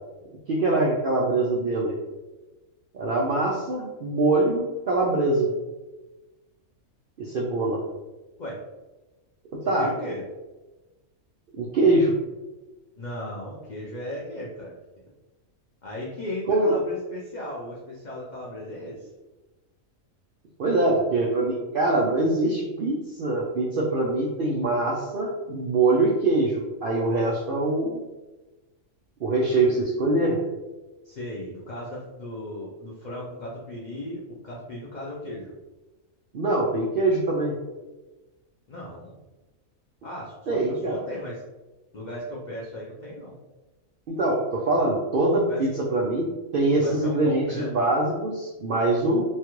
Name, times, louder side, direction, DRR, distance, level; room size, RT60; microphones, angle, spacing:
voice 1, 0.5-2.0 2.9-5.5 7.2-7.8 9.7-9.9 11.6-12.1 16.5-16.8 20.6-28.0 29.2-30.4 36.3-37.6 40.5-41.0 44.1-46.3 46.5-49.2, right 2 dB, 75° right, -3 dB, 0.5 m, -23 dB
voice 2, 9.6-10.2 13.0-14.7 15.8-19.1 31.0-35.5 38.7-39.2 40.0-41.4 41.9-43.4 45.5-45.6 46.8-47.7, left 1 dB, 85° left, -4 dB, 0.4 m, -36 dB
3.2 x 2.3 x 2.9 m, 1.1 s
omnidirectional pair, 1.5 m